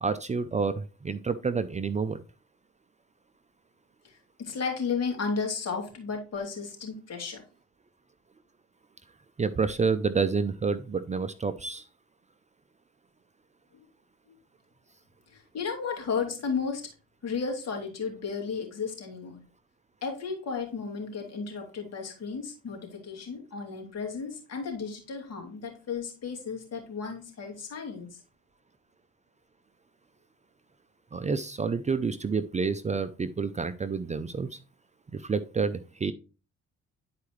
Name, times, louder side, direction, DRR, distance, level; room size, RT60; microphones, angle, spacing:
voice 1, 0.0-2.2 9.4-11.9 31.1-34.6 35.1-36.1, right 5 dB, 25° right, 12 dB, 0.5 m, -29 dB
voice 2, 4.0-7.4 15.3-16.8 17.2-19.4 20.0-28.2, left 5 dB, 55° left, 1 dB, 2.7 m, -34 dB
10.5 x 4.7 x 3.1 m, 0.33 s
cardioid pair, 90°, 30 cm